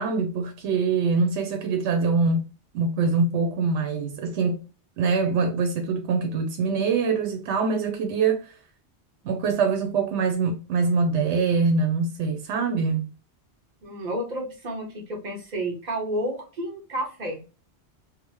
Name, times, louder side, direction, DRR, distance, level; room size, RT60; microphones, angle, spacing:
voice 1, 0.0-2.5 2.7-4.6 5.0-8.5 9.2-13.1, right 4 dB, 85° right, 0.9 m, -24 dB
voice 2, 13.8-17.4, right 1 dB, 45° right, 0.9 m, -31 dB
2.8 x 2.0 x 3.0 m
omnidirectional pair, 1.2 m